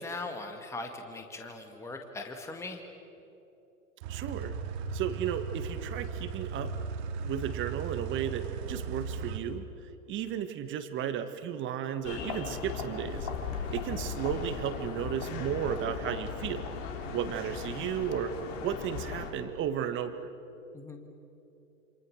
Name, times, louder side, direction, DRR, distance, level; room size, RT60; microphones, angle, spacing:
voice 1, 0.0-2.8 20.7-21.1, left 2 dB, 5° left, 4 dB, 1.8 m, -40 dB
sound 1, 4.0-9.4, right 5 dB, 45° right, 2.5 m, -37 dB
voice 2, 4.1-4.5 4.9-6.7 7.2-9.6 10.1-13.3 13.6-16.7 17.1-18.3 18.6-20.2, right 9 dB, 25° right, 9 dB, 1.6 m, -34 dB
sound 2, 12.0-19.3, left 6 dB, 45° left, 3.6 m, -37 dB
28.0 x 27.0 x 6.5 m, 2.9 s
hypercardioid pair, 120°, 45 cm